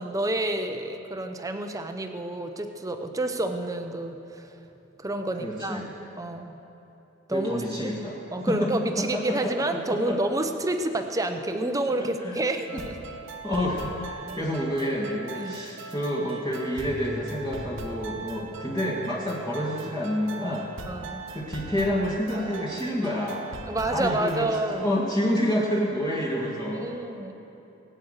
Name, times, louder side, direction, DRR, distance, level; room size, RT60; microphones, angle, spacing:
voice 1, 0.0-4.6 5.0-6.6 7.3-7.9 8.3-13.0 15.4-15.6 20.9-21.3 23.7-24.9 26.8-27.3, right 1 dB, 15° right, 6 dB, 0.8 m, -29 dB
voice 2, 5.4-5.9 7.3-8.2 8.5-8.7 9.0-9.5 9.9-10.2 12.0-12.4 13.4-20.7 21.3-23.5 23.9-26.9, equal, 20° left, -6 dB, 1.9 m, -28 dB
sound 1, 12.7-24.8, right 3 dB, 70° right, 1.1 m, -40 dB
21.5 x 8.9 x 6.5 m, 3.0 s
head